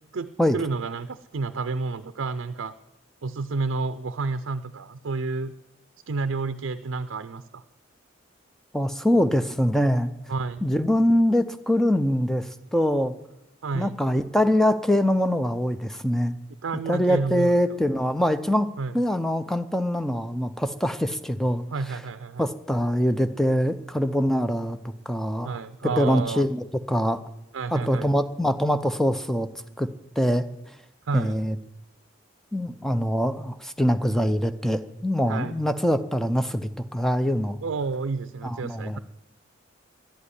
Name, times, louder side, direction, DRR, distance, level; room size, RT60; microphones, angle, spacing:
voice 1, 0.1-2.7 3.2-5.5 6.1-7.6 10.3-10.7 13.6-14.0 16.6-17.6 18.8-18.9 21.7-22.4 25.4-26.4 27.5-28.1 31.1-31.4 35.3-35.5 37.6-39.0, right 4 dB, 75° right, 11 dB, 0.5 m, -30 dB
voice 2, 8.7-10.1 10.6-13.1 13.7-16.3 16.9-21.7 22.4-24.8 25.1-25.6 25.8-27.2 27.7-29.5 29.8-29.9 30.2-30.4 31.1-31.6 32.5-37.6 38.4-39.0, equal, ahead, 10 dB, 0.5 m, -23 dB
11.5 x 8.2 x 9.9 m, 0.90 s
head